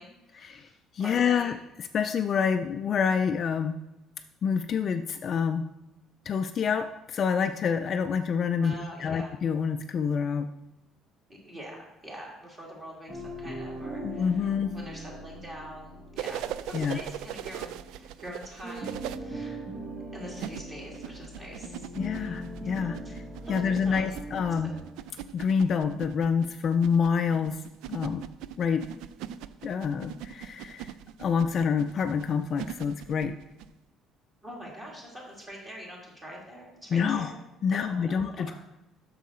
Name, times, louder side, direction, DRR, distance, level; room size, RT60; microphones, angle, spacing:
voice 1, 0.0-1.5 8.6-9.3 11.3-19.6 20.1-22.3 22.6-23.1 23.5-24.3 24.6-24.7 34.4-37.4 37.7-38.5, equal, 20° right, -2 dB, 2.2 m, -44 dB
voice 2, 0.9-1.5 1.9-3.8 4.4-5.7 6.3-10.5 14.0-14.7 16.7-17.0 22.0-23.0 23.5-24.7 25.3-27.6 27.9-28.2 28.6-28.8 29.6-30.9 31.2-33.3 36.9-37.3 37.6-38.5, left 6 dB, 40° left, 7 dB, 0.3 m, -27 dB
sound 1, 13.1-18.3 18.6-24.9, right 1 dB, 45° right, 1.7 m, -41 dB
sound 2, 16.2-19.2 20.3-33.7 35.4-35.5, right 11 dB, 85° right, 0.3 m, -40 dB
7.5 x 6.3 x 4.3 m, 0.95 s
cardioid pair, 155°, 0 cm